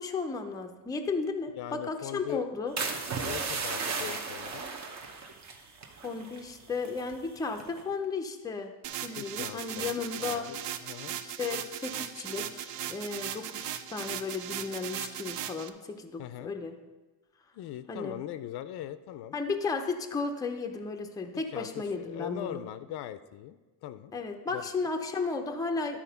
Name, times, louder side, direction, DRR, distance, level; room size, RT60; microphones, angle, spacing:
voice 1, 0.0-2.8 6.0-8.7 9.0-10.5 11.2-16.8 17.9-18.2 19.3-22.7 24.1-26.0, left 4 dB, 10° left, 4 dB, 0.5 m, -34 dB
voice 2, 1.5-2.5 3.2-4.7 9.2-9.9 10.2-11.2 16.2-16.5 17.5-19.4 21.3-24.1 24.5-24.6, left 13 dB, 70° left, 13 dB, 0.5 m, -40 dB
sound 1, 2.8-6.5 6.8-7.1 7.6-7.9, right 4 dB, 40° right, 0.9 m, -35 dB
sound 2, 8.8-15.7, right 10 dB, 80° right, 0.6 m, -38 dB
12.0 x 4.3 x 5.6 m, 1.2 s
cardioid pair, 155°, 41 cm